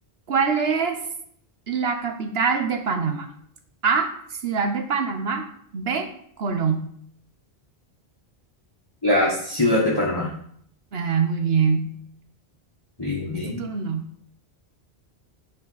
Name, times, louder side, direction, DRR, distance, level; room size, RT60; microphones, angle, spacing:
voice 1, 0.3-1.1 1.7-3.3 3.8-5.5 5.7-6.1 6.4-6.9 10.9-11.9 13.5-14.1, right 5 dB, 70° right, 6 dB, 1.1 m, -24 dB
voice 2, 9.0-10.3 13.0-13.6, left 1 dB, 20° left, -6 dB, 1.5 m, -22 dB
9.2 x 5.1 x 4.0 m, 0.64 s
omnidirectional pair, 1.1 m